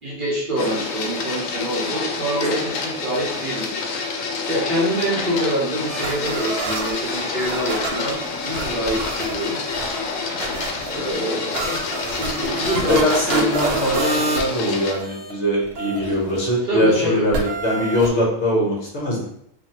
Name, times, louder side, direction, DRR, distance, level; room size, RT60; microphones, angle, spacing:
voice 1, 0.0-4.1 4.5-8.2 8.4-9.6 10.9-11.8 12.1-13.5 16.0-16.2 16.6-17.3, equal, 45° right, -6 dB, 0.8 m, -25 dB
Printer, 0.6-14.9, left 4 dB, 80° left, 1.0 m, -28 dB
sound 1, 5.9-15.3 15.6-16.5 17.3-18.1, right 2 dB, 75° right, 0.9 m, -29 dB
voice 2, 12.9-19.3, equal, 60° left, -3 dB, 1.2 m, -22 dB
3.3 x 2.3 x 2.8 m, 0.72 s
omnidirectional pair, 1.4 m